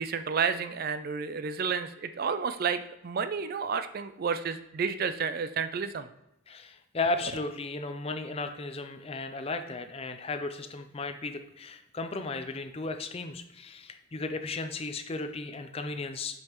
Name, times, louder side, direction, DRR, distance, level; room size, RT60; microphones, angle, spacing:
voice 1, 0.0-6.1, right 6 dB, 45° right, 11 dB, 0.4 m, -31 dB
voice 2, 6.5-16.4, left 3 dB, 30° left, 8 dB, 0.5 m, -35 dB
8.0 x 5.4 x 3.0 m, 0.87 s
head